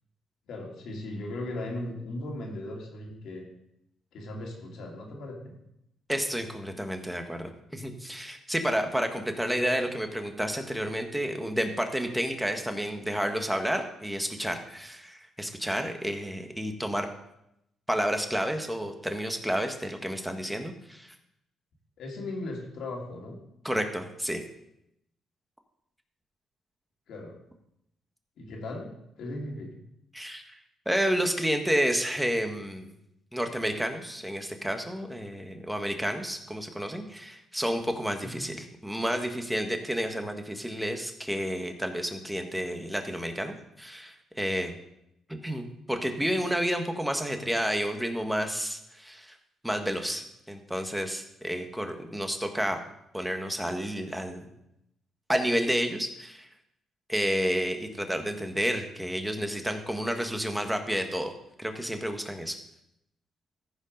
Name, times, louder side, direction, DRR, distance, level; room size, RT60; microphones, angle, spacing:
voice 1, 0.5-3.4 4.1-5.5 9.4-9.8 22.0-23.4 27.1-27.3 28.4-28.9 29.2-29.8 38.2-38.5, left 1 dB, 75° left, 0 dB, 2.8 m, -37 dB
voice 2, 6.1-17.1 17.9-21.1 23.6-24.4 30.1-30.4 30.8-32.9 33.3-44.8 45.3-49.3 49.6-52.8 53.1-54.4 55.3-56.5 57.1-61.3 61.6-62.6, equal, 5° right, 5 dB, 1.4 m, -30 dB
14.5 x 5.2 x 5.2 m, 0.81 s
cardioid pair, 90°, 0 cm